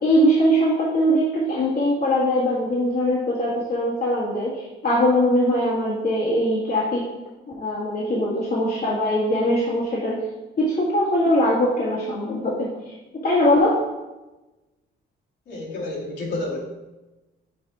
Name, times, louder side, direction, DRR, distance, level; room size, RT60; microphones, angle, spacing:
voice 1, 0.0-7.0 7.6-10.2 10.6-12.9 13.2-13.8, equal, 50° left, -7 dB, 1.7 m, -21 dB
voice 2, 15.5-16.6, left 2 dB, 70° left, -5 dB, 2.3 m, -30 dB
6.7 x 4.1 x 4.7 m, 1.1 s
cardioid pair, 90°, 20 cm